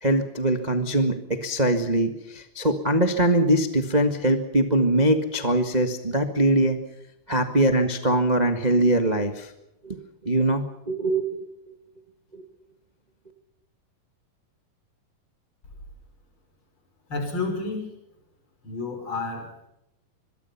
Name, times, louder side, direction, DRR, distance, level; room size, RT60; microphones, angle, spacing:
voice 1, 0.0-6.8 7.3-9.5 9.8-10.0 10.2-11.7 12.3-12.4, right 1 dB, 60° right, 6 dB, 0.4 m, -22 dB
voice 2, 17.1-17.9 18.6-19.5, left 3 dB, 35° left, 5 dB, 6.1 m, -30 dB
25.0 x 22.5 x 5.7 m, 0.87 s
omnidirectional pair, 4.1 m